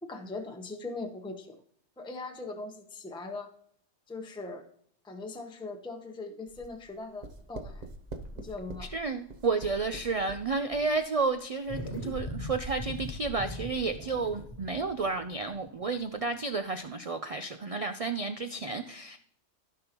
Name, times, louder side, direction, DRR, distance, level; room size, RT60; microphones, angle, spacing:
voice 1, 0.0-1.6 2.0-3.5 4.1-4.7 5.0-7.9 8.4-8.9, left 3 dB, 5° left, 4 dB, 0.7 m, -40 dB
sound 1, 6.5-12.6 12.9-13.3, right 2 dB, 40° right, 0.7 m, -45 dB
voice 2, 8.9-19.2, right 4 dB, 70° right, 8 dB, 0.3 m, -31 dB
sound 2, 11.7-16.3, left 1 dB, 60° left, 1.6 m, -40 dB
15.5 x 5.3 x 2.9 m, 0.64 s
omnidirectional pair, 1.3 m